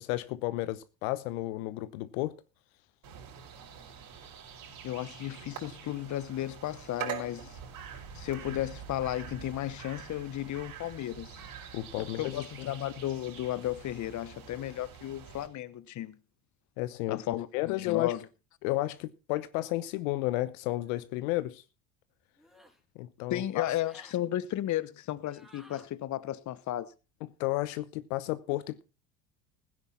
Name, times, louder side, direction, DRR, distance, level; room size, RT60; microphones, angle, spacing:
voice 1, 0.0-2.4 11.7-12.7 16.8-18.1 18.6-21.6 23.0-23.6 27.4-28.8, left 17 dB, 70° left, 1.0 m, -32 dB
sound 1, 3.0-15.5, right 7 dB, 50° right, 5.7 m, -45 dB
voice 2, 4.8-7.6 8.1-11.4 12.0-16.2 17.1-18.3 23.3-26.9, left 13 dB, 45° left, 1.1 m, -34 dB
sound 2, 20.8-21.1 22.4-22.8 23.7-24.2 25.3-25.9, equal, ahead, 3.7 m, -56 dB
16.5 x 9.9 x 4.3 m
hypercardioid pair, 70°, 42 cm